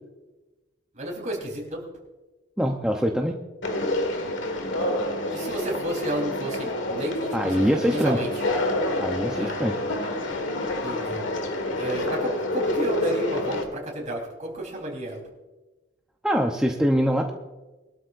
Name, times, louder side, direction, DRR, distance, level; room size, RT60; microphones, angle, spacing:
voice 1, 0.9-1.8 5.3-8.3 9.3-9.7 10.8-11.2 11.8-15.2, right 1 dB, 40° right, 0 dB, 3.8 m, -31 dB
voice 2, 2.6-3.4 7.3-8.2 9.0-9.8 16.2-17.3, equal, 5° right, 1 dB, 0.8 m, -23 dB
Conversation, 3.6-13.6, left 1 dB, 70° left, 1.7 m, -28 dB
22.0 x 12.5 x 2.6 m, 1.2 s
head